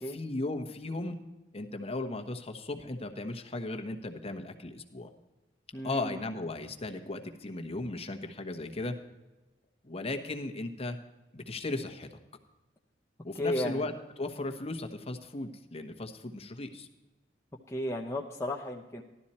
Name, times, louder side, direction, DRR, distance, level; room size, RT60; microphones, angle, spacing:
voice 1, 0.0-1.2 1.5-5.1 5.8-9.0 9.8-11.0 11.3-12.1 13.2-13.9 14.2-16.9, left 2 dB, 35° left, 5 dB, 1.2 m, -36 dB
voice 2, 5.7-6.2 13.3-13.9 17.7-19.0, left 1 dB, 15° left, -1 dB, 0.8 m, -34 dB
15.0 x 12.0 x 4.3 m, 1.1 s
head